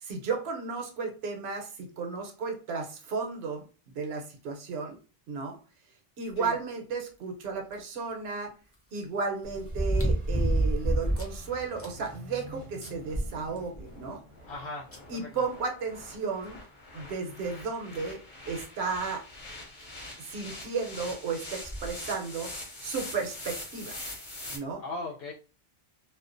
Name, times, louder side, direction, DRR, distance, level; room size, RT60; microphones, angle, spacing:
voice 1, 0.0-3.6 3.9-5.0 5.3-5.6 6.2-8.5 8.9-14.2 15.1-16.6 16.9-18.2 18.5-19.2 20.2-22.5 22.8-24.0 24.5-24.8, right 4 dB, 80° right, 2 dB, 0.9 m, -34 dB
sound 1, 7.7-7.8 9.7-11.4 11.8-11.9 12.4-12.5 12.8-13.9 14.9-15.0 16.5-16.6 17.1-17.2 17.9-18.2 19.5-19.6 19.8-19.9 21.6-21.9 22.6-22.7, right 1 dB, 25° left, 0.3 m, -28 dB
sound 2, 9.4-16.0, equal, 40° right, 0.5 m, -48 dB
sound 3, 9.5-24.6, left 2 dB, 50° left, 0.9 m, -44 dB
voice 2, 14.5-15.3 24.8-25.3, left 3 dB, 85° left, -3 dB, 0.8 m, -38 dB
2.4 x 2.1 x 2.4 m, 0.35 s
omnidirectional pair, 1.1 m